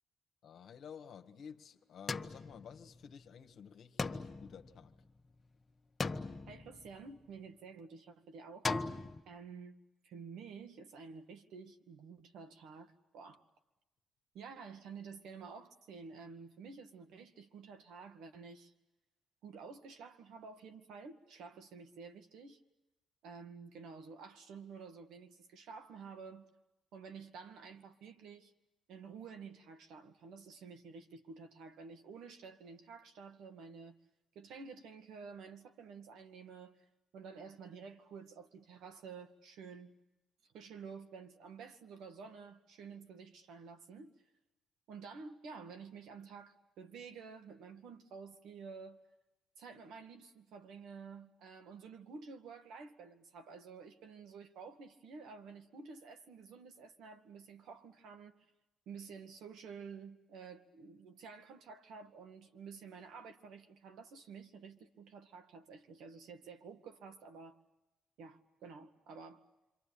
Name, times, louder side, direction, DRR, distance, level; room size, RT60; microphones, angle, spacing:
voice 1, 0.4-4.9, left 7 dB, 65° left, 1.4 m, -52 dB
sound 1, 2.1-3.3 4.0-5.4 6.0-7.4 8.7-9.2, left 3 dB, 25° left, 1.3 m, -39 dB
voice 2, 6.5-8.7 9.3-13.4 14.3-18.7 19.4-22.6 23.2-26.5 26.9-28.5 28.9-34.0 34.4-36.8 37.1-39.9 40.5-44.1 44.9-49.0 49.6-58.4 58.9-67.6 68.2-69.4, right 5 dB, 85° right, 2.0 m, -51 dB
28.0 x 25.0 x 8.6 m
cardioid pair, 90°, 0 cm